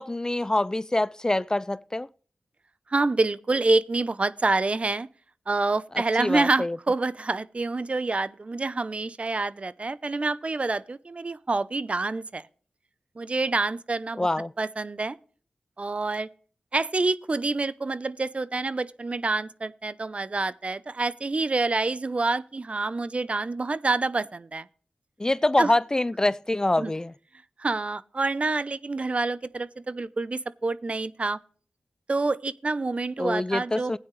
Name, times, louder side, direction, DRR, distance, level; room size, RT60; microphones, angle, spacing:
voice 1, 0.0-2.1 6.2-6.8 14.2-14.5 25.2-27.1 33.2-34.0, left 1 dB, 25° left, 0.4 m, -25 dB
voice 2, 2.9-5.1 5.5-12.4 13.2-14.3 14.6-15.2 15.8-16.3 16.7-24.7 25.6-25.7 26.8-26.9 27.6-31.4 32.1-34.0, right 3 dB, 45° right, 0.7 m, -27 dB
16.5 x 9.4 x 3.2 m
cardioid pair, 50°, 3 cm